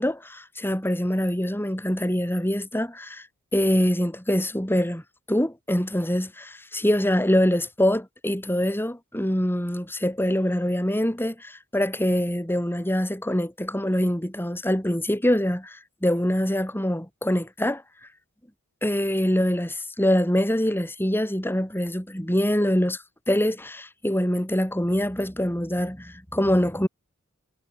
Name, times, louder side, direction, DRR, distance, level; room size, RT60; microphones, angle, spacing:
voice 1, 0.0-3.2 3.5-5.0 5.3-17.8 18.8-23.0 23.3-26.9, equal, 10° left, 4.5 m, -24 dB
head